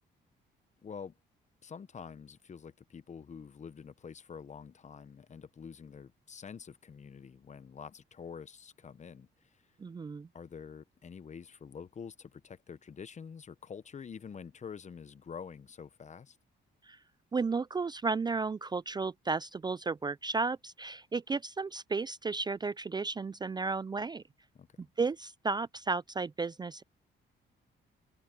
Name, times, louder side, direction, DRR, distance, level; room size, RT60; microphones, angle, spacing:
voice 1, 0.8-1.2 1.6-9.3 9.5-9.6 10.3-16.4 24.5-24.9, left 6 dB, 35° left, 0.8 m, -47 dB
voice 2, 9.8-10.3 16.8-17.0 17.3-24.2 25.0-26.8, right 4 dB, 20° right, 0.4 m, -33 dB
open air
cardioid pair, 90°, 20 cm